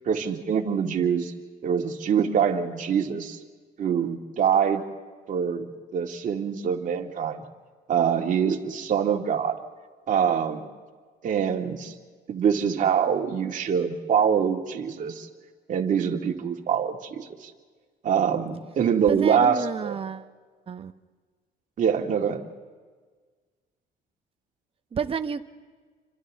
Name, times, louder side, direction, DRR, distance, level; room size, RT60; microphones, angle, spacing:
voice 1, 0.1-1.3 1.6-3.4 3.8-4.8 5.3-7.5 7.9-9.6 10.1-10.7 11.2-11.9 12.3-15.3 15.7-17.5 18.0-20.0 21.8-22.4, right 7 dB, 50° right, 2 dB, 2.3 m, -24 dB
voice 2, 19.1-20.3 20.7-20.9 24.9-25.4, right 6 dB, 35° right, 8 dB, 1.2 m, -30 dB
29.0 x 25.5 x 3.7 m, 1.5 s
cardioid pair, 110°, 17 cm